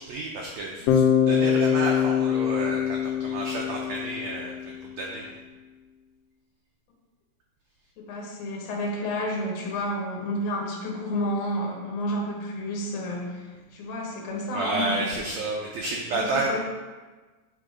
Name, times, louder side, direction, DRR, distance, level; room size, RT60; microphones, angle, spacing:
voice 1, 0.0-5.3 14.5-16.6, right 2 dB, 85° right, -1 dB, 1.5 m, -31 dB
Bass guitar, 0.9-4.9, left 8 dB, 80° left, 2.3 m, -24 dB
voice 2, 8.0-15.2 16.1-16.6, left 1 dB, 60° left, -2 dB, 2.2 m, -31 dB
8.0 x 4.0 x 5.0 m, 1.3 s
omnidirectional pair, 4.1 m